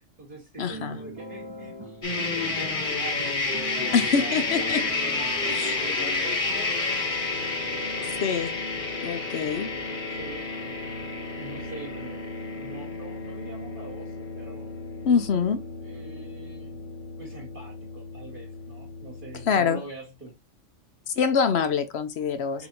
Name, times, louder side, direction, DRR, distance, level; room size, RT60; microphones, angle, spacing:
voice 1, 0.0-8.2 9.3-14.7 15.8-16.8 17.2-20.4 22.5-22.7, right 2 dB, 45° right, 2.0 m, -44 dB
voice 2, 0.6-1.0 3.9-4.8 5.5-5.8 8.2-8.6 9.0-9.7 15.0-15.6 19.5-19.8 21.1-22.7, left 6 dB, 60° left, 0.9 m, -25 dB
sound 1, 0.7-5.8, right 1 dB, 25° right, 0.8 m, -41 dB
sound 2, 2.0-19.6, left 3 dB, 45° left, 1.2 m, -31 dB
6.8 x 2.8 x 2.8 m
omnidirectional pair, 1.3 m